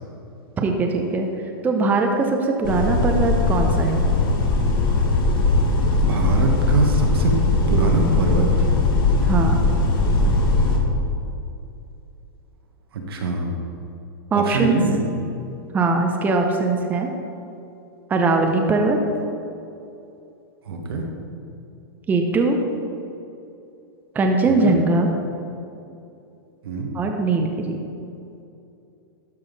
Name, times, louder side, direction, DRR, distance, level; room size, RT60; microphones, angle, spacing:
voice 1, 0.6-1.3 1.6-4.1 9.3-9.7 14.3-14.8 15.7-17.1 18.1-19.0 22.1-22.6 24.1-25.1 26.9-27.8, right 3 dB, 15° right, 3 dB, 0.7 m, -20 dB
sound 1, 2.6-10.8, left 2 dB, 65° left, 1.6 m, -19 dB
voice 2, 6.0-7.3 7.7-8.7 12.9-13.5 14.3-15.0 20.7-21.0 24.5-24.7 26.6-26.9, right 3 dB, 85° right, 1 dB, 1.5 m, -23 dB
12.5 x 5.6 x 4.0 m, 2.7 s
hypercardioid pair, 145°, 12 cm